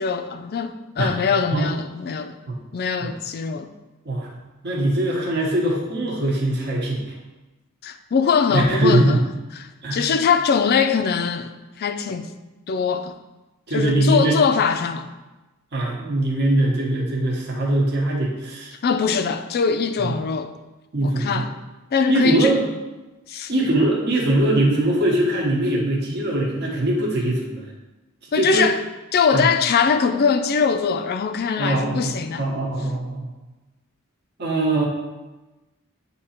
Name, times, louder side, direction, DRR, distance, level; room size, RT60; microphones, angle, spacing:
voice 1, 0.0-2.3 2.7-3.7 7.8-9.2 9.6-11.5 11.8-12.3 12.7-13.1 13.7-15.1 18.8-20.5 21.0-21.5 21.9-22.7 23.3-23.5 28.3-28.8 29.1-32.4, left 6 dB, 45° left, 8 dB, 0.4 m, -22 dB
voice 2, 4.6-7.0 8.5-9.2 9.8-10.1 13.7-14.4 15.7-18.7 20.0-20.1 20.9-21.5 22.1-22.6 23.5-27.7 28.3-28.7 29.3-29.5 31.6-33.3 34.4-34.9, right 1 dB, 55° right, -3 dB, 1.1 m, -21 dB
8.2 x 2.9 x 4.3 m, 1.1 s
head